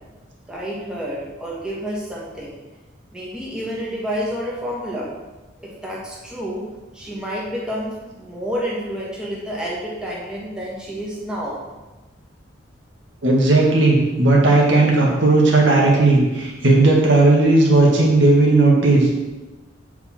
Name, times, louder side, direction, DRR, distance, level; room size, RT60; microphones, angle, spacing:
voice 1, 0.5-2.5 3.1-5.1 5.6-6.6 6.9-11.6, equal, 5° right, -6 dB, 1.5 m, -29 dB
voice 2, 13.2-19.1, right 2 dB, 70° right, -2 dB, 1.7 m, -15 dB
8.0 x 4.9 x 4.3 m, 1.1 s
head